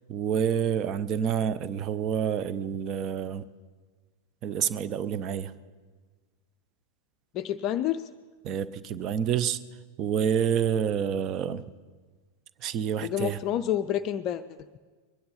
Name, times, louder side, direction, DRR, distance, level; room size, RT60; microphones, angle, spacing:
voice 1, 0.1-3.4 4.4-5.5 8.4-9.6 10.0-11.6 12.6-13.4, right 8 dB, 35° right, 15 dB, 0.6 m, -28 dB
voice 2, 7.3-8.1 13.0-14.4, left 11 dB, 35° left, 9 dB, 0.4 m, -28 dB
22.5 x 10.5 x 5.6 m, 1.4 s
figure-of-eight pair, 90°, 0 cm